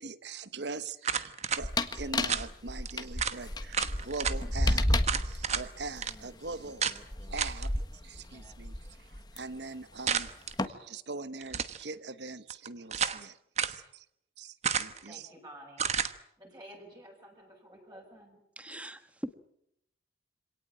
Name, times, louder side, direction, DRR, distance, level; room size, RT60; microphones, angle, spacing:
voice 1, 0.0-5.0 5.2-10.3 10.7-13.4 13.6-14.0 14.4-15.3, right 3 dB, 70° right, 1.1 m, -42 dB
sound 1, 1.0-1.6 2.3-2.5 2.9-3.0 3.2-3.4 3.7-4.4 5.0-5.7 6.0-6.1 6.8-7.0 7.4-7.7 10.1-10.5 11.4-11.8 12.5-13.2 13.6-13.8 14.6-15.1 15.8-16.1, right 7 dB, 35° right, 1.2 m, -31 dB
sound 2, 1.6-9.4 10.1-10.7, left 1 dB, 20° left, 1.4 m, -32 dB
voice 2, 15.1-15.9 16.4-18.4, right 1 dB, 20° right, 5.7 m, -51 dB
voice 3, 18.6-19.3, equal, 5° right, 1.5 m, -41 dB
26.0 x 18.0 x 9.0 m
head